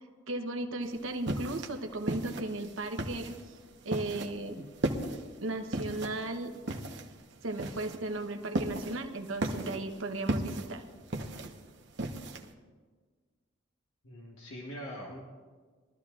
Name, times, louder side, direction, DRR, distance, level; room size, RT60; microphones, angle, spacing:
voice 1, 0.3-3.5 3.8-4.7 5.4-6.5 7.4-10.8, right 2 dB, 75° right, 5 dB, 1.0 m, -36 dB
sound 1, 0.8-12.5, right 1 dB, 55° right, 1.0 m, -36 dB
voice 2, 14.0-15.2, equal, 75° left, -2 dB, 1.4 m, -42 dB
22.0 x 13.0 x 2.5 m, 1.5 s
head